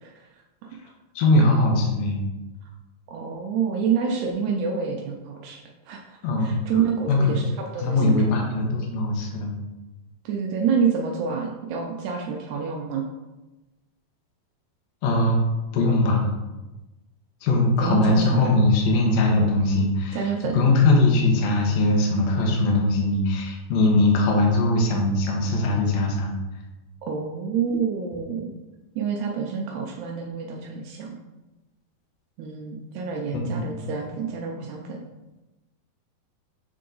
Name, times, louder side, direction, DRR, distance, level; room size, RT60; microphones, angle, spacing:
voice 1, 1.2-2.2 6.2-6.6 7.1-7.4 7.8-9.5 15.0-15.4 15.7-16.3 17.4-26.3 33.3-33.8, left 2 dB, 65° left, 0 dB, 1.8 m, -21 dB
voice 2, 3.1-5.6 5.9-8.3 10.3-13.0 17.8-18.7 20.1-20.6 27.1-28.5 29.0-31.2 32.4-35.0, right 6 dB, 85° right, 0 dB, 1.7 m, -28 dB
6.7 x 3.7 x 3.9 m, 1.1 s
omnidirectional pair, 4.1 m